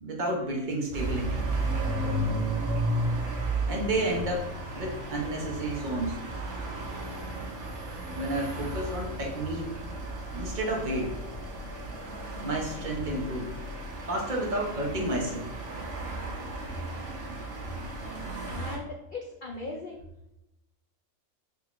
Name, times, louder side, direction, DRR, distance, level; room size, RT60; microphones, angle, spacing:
voice 1, 0.0-1.5 3.6-4.5 4.7-6.2 8.2-9.7 10.3-11.1 12.4-13.6 14.1-15.5, right 1 dB, 40° right, 0 dB, 0.8 m, -31 dB
sound 1, 0.9-18.8, right 1 dB, 60° right, 1.2 m, -34 dB
voice 2, 18.5-20.0, left 3 dB, 90° left, 0 dB, 0.4 m, -39 dB
3.7 x 3.6 x 3.0 m, 0.89 s
omnidirectional pair, 1.5 m